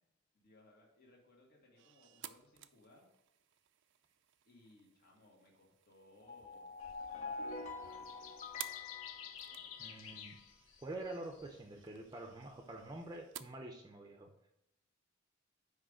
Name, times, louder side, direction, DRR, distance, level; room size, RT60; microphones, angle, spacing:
voice 1, 0.3-3.1 4.5-6.8 7.1-8.3 9.2-10.0, left 2 dB, 50° left, -1 dB, 1.8 m, -65 dB
sound 1, 1.8-13.4, right 12 dB, 60° right, 0.4 m, -56 dB
sound 2, 6.2-10.2, left 4 dB, 35° left, 0.6 m, -46 dB
sound 3, 6.8-13.2, left 8 dB, 80° left, 0.6 m, -54 dB
voice 2, 9.8-10.4 10.8-14.3, right 2 dB, 20° right, 3 dB, 0.6 m, -47 dB
6.3 x 5.0 x 4.9 m, 0.83 s
head